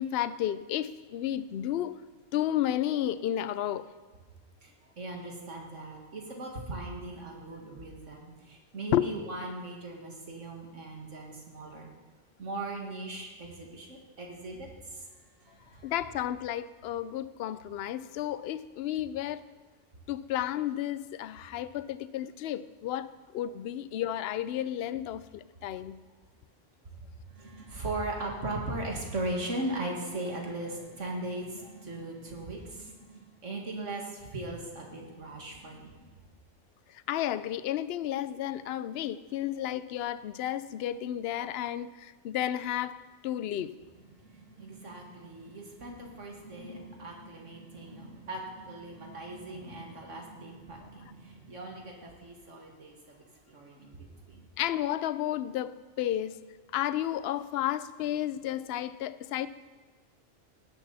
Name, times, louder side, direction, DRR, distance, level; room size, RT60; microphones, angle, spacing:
voice 1, 0.0-2.0 2.3-3.9 8.9-9.1 15.8-19.4 20.1-23.1 23.3-26.0 37.1-43.0 43.2-43.7 54.6-55.7 56.0-56.4 56.7-59.5, left 12 dB, 65° left, 15 dB, 0.7 m, -32 dB
voice 2, 4.6-11.9 12.4-15.1 15.4-15.9 26.9-36.1 44.1-53.0 53.5-54.5, right 2 dB, 80° right, 0 dB, 2.4 m, -39 dB
17.5 x 10.5 x 4.2 m, 1.3 s
omnidirectional pair, 1.2 m